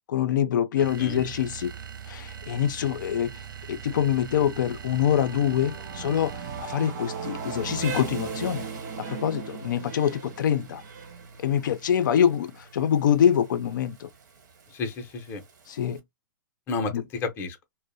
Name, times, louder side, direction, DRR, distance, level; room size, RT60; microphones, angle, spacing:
voice 1, 0.0-1.7 2.1-3.3 3.7-8.7 9.0-10.8 11.4-14.1 15.7-16.0 16.9-17.0, left 9 dB, 75° left, 0.4 m, -25 dB
voice 2, 0.8-1.2 14.7-15.4 16.7-17.6, left 4 dB, 20° left, 0.6 m, -32 dB
Rain, 0.8-16.0, right 6 dB, 65° right, 1.0 m, -46 dB
sound 1, 0.8-6.9, right 8 dB, 85° right, 0.5 m, -41 dB
Singing / Musical instrument, 4.1-13.8, right 5 dB, 30° right, 0.5 m, -40 dB
2.5 x 2.0 x 2.6 m
hypercardioid pair, 150°, 10 cm